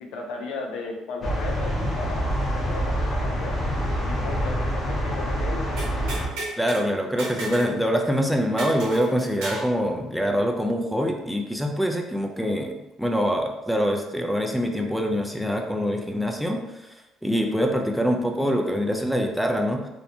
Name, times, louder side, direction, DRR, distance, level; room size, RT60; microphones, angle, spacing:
voice 1, 0.0-5.7, left 3 dB, 80° left, 1 dB, 0.4 m, -36 dB
sound 1, 1.2-6.3, equal, 40° left, 0.8 m, -26 dB
sound 2, 5.8-6.8 7.2-7.8 8.0-8.1 8.6-9.7, right 2 dB, 80° right, 0.8 m, -33 dB
voice 2, 6.6-16.6 17.2-19.8, equal, ahead, 2 dB, 0.4 m, -24 dB
2.6 x 2.1 x 2.7 m, 0.95 s
supercardioid pair, 75°, 0 cm